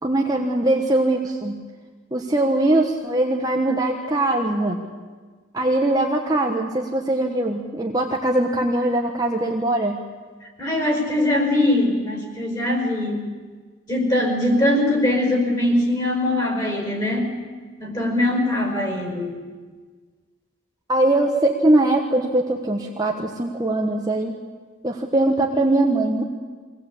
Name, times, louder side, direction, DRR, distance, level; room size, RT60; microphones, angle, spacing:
voice 1, 0.0-1.6 2.1-4.8 5.5-10.0 20.9-24.3 24.8-26.2, right 1 dB, 20° right, 1 dB, 1.3 m, -21 dB
voice 2, 10.6-13.2 13.9-17.3 17.8-19.3, left 1 dB, 20° left, 3 dB, 5.0 m, -21 dB
23.5 x 18.0 x 8.6 m, 1.5 s
head